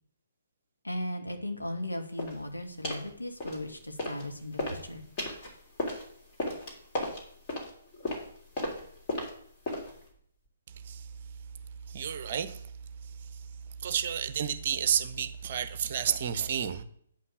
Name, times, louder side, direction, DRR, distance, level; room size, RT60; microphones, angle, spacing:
voice 1, 0.8-5.0, left 1 dB, 80° left, 1.8 m, -37 dB
sound 1, 2.2-2.4 2.8-3.1 3.4-4.2 4.5-10.1, left 1 dB, 25° left, 3.1 m, -35 dB
voice 2, 10.7-11.1 11.9-12.7 13.0-13.5 13.8-16.8, right 8 dB, 40° right, 0.8 m, -31 dB
8.8 x 5.6 x 6.3 m
figure-of-eight pair, 130°, 0 cm